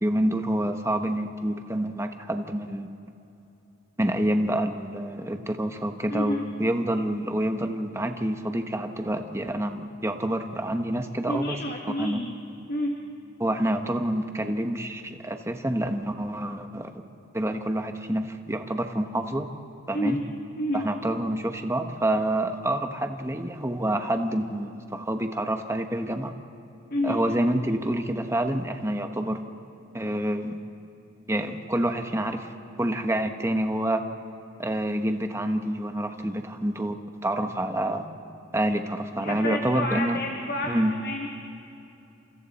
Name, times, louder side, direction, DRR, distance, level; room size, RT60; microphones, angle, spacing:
voice 1, 0.0-2.9 4.0-11.6 12.0-12.2 13.4-17.0 17.3-19.5 19.9-20.2 20.7-26.3 27.0-29.4 29.9-30.6 31.3-32.5 32.8-34.0 34.6-36.9 37.2-38.0 38.5-40.2 40.7-40.9, right 1 dB, 15° right, 6 dB, 1.1 m, -27 dB
voice 2, 6.1-6.4 11.3-12.3 12.7-12.9 19.9-20.2 20.6-20.8 26.9-27.2 39.2-41.3, left 1 dB, 45° left, 1 dB, 1.5 m, -29 dB
29.5 x 27.0 x 4.2 m, 2.8 s
head